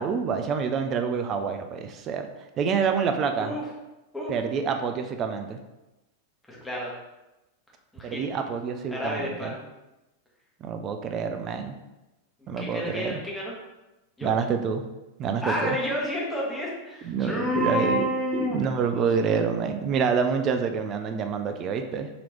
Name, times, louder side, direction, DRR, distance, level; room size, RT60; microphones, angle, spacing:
voice 1, 0.0-2.3 2.6-3.6 4.3-5.6 8.0-9.5 10.6-11.7 12.5-13.2 14.2-14.8 15.2-15.8 17.0-22.1, right 6 dB, 30° right, 6 dB, 0.4 m, -27 dB
voice 2, 6.5-6.9 7.9-8.2 8.9-9.7 12.4-13.5 14.2-14.3 15.4-18.6, equal, 5° left, -4 dB, 1.1 m, -30 dB
3.8 x 2.9 x 3.1 m, 0.99 s
figure-of-eight pair, 90°, 0 cm